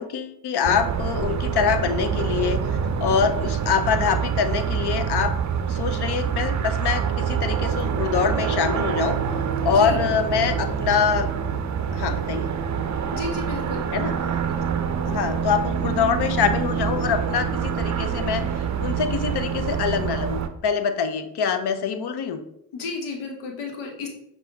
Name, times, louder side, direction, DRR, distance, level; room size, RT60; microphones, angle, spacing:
voice 1, 0.0-5.3 5.7-9.2 9.6-11.3 11.9-12.5 13.9-14.2 15.1-18.4 18.8-22.4, left 7 dB, 55° left, 10 dB, 0.6 m, -24 dB
sound 1, 0.6-20.5, right 7 dB, 40° right, 0.5 m, -26 dB
voice 2, 9.7-10.0 13.1-13.9 22.7-24.1, left 4 dB, 85° left, 2 dB, 1.0 m, -32 dB
5.7 x 2.5 x 3.6 m, 0.78 s
hypercardioid pair, 40°, 48 cm